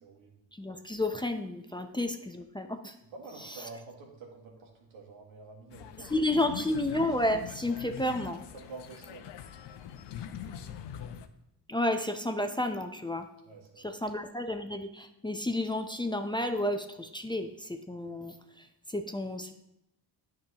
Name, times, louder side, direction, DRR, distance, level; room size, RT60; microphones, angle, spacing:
voice 1, 0.0-0.3 3.1-6.4 8.5-9.3 13.4-14.0, right 4 dB, 85° right, 0 dB, 1.7 m, -48 dB
voice 2, 0.5-2.9 3.5-3.6 6.0-8.4 11.7-13.3 13.8-19.6, left 1 dB, 10° left, 6 dB, 0.5 m, -31 dB
sound 1, 5.7-11.3, left 9 dB, 60° left, 0.7 m, -43 dB
9.1 x 5.9 x 2.9 m, 0.85 s
supercardioid pair, 65°, 47 cm